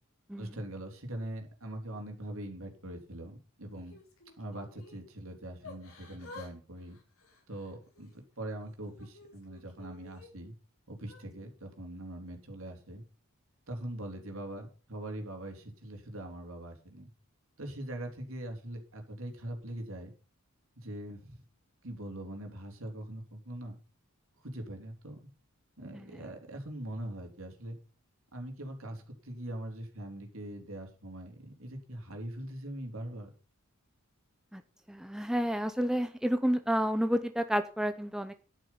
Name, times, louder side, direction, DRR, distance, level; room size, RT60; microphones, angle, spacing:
voice 1, 0.4-4.0 4.4-7.0 7.5-10.5 10.9-13.0 13.7-17.1 17.6-20.1 20.8-21.4 21.8-23.8 24.4-25.2 25.8-27.8 28.3-33.3, right 1 dB, 65° right, 3 dB, 3.6 m, -42 dB
Yell / Crying sobbing, 3.7-5.0 5.6-6.5 6.8-8.1 8.7-10.3 11.0-11.2, left 3 dB, 70° left, 5.0 m, -52 dB
voice 2, 34.9-38.3, equal, 5° right, 9 dB, 0.6 m, -30 dB
11.0 x 9.6 x 5.8 m, 0.37 s
head